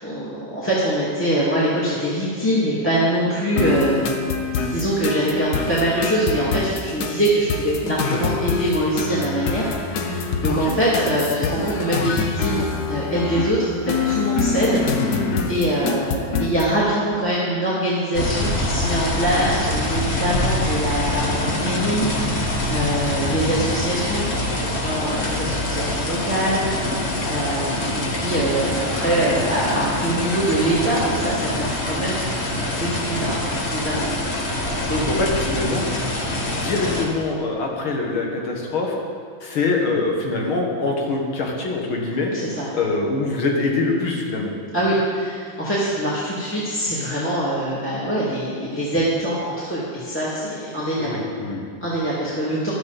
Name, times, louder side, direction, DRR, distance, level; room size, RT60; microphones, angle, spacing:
voice 1, 0.0-4.1 4.6-32.2 32.8-33.4 33.7-34.0 34.4-35.0 42.3-42.7 44.7-51.2 51.8-52.7, right 1 dB, 5° left, -8 dB, 2.3 m, -23 dB
sound 1, 3.6-16.7, left 5 dB, 60° left, 1.3 m, -25 dB
sound 2, 18.1-37.0, left 1 dB, 35° left, 1.6 m, -25 dB
voice 2, 34.9-35.9 36.3-39.0 39.4-42.3 42.7-44.5 51.0-51.6, left 3 dB, 80° left, 0 dB, 2.6 m, -24 dB
15.5 x 12.0 x 4.2 m, 2.1 s
omnidirectional pair, 2.2 m